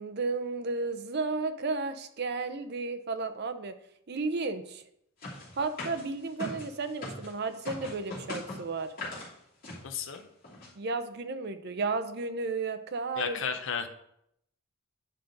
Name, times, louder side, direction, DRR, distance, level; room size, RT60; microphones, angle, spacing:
voice 1, 0.0-3.7 4.1-4.8 5.6-8.9 10.8-13.4, right 3 dB, 50° right, 10 dB, 0.6 m, -33 dB
sound 1, 5.2-7.3 7.6-9.3 9.6-9.8 10.1-10.2 10.4-10.7, left 2 dB, 45° left, 2.9 m, -40 dB
voice 2, 9.8-10.3 13.2-13.9, left 6 dB, 60° left, 6 dB, 0.6 m, -33 dB
9.2 x 5.3 x 3.8 m, 0.76 s
head